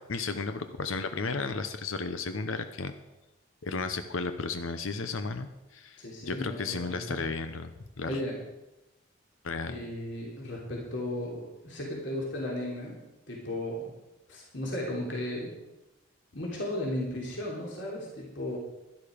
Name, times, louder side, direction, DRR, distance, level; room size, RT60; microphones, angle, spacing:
voice 1, 0.0-2.9 3.6-6.0 6.3-8.2 9.4-9.8, left 4 dB, 80° left, 9 dB, 0.8 m, -34 dB
voice 2, 6.0-7.0 8.0-8.4 9.7-13.0 13.3-13.9 14.3-15.5 16.3-18.6, left 1 dB, 60° left, -3 dB, 3.2 m, -35 dB
12.0 x 11.5 x 5.1 m, 0.99 s
head